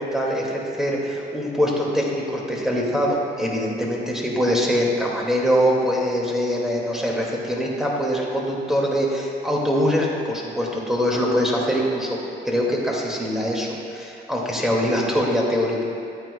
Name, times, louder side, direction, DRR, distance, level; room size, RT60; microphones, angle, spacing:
voice 1, 0.0-12.2 12.4-15.8, equal, ahead, -3 dB, 2.0 m, -23 dB
13.0 x 9.0 x 2.2 m, 2.5 s
cardioid pair, 90°, 20 cm